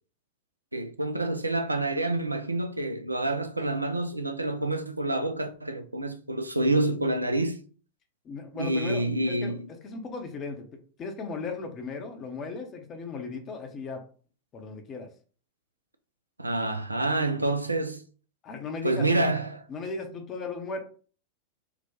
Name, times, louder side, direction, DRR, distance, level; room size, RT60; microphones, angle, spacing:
voice 1, 0.7-7.6 8.6-9.6 16.4-18.0 18.8-19.6, right 2 dB, 85° right, 0.4 m, -27 dB
voice 2, 8.2-9.6 9.8-10.6 11.0-14.0 14.5-15.1 18.4-19.2 19.7-20.8, left 4 dB, 30° left, 0.7 m, -36 dB
3.9 x 2.2 x 2.9 m
figure-of-eight pair, 90°, 0 cm